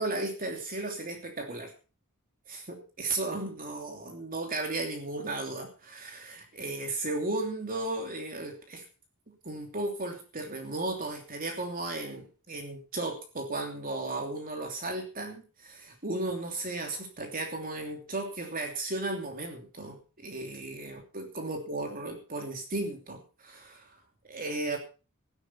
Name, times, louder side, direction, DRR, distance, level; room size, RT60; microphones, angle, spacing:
voice 1, 0.0-1.7 2.5-8.8 9.4-24.8, right 2 dB, 40° right, 3 dB, 3.0 m, -35 dB
15.5 x 11.0 x 5.7 m, 0.36 s
head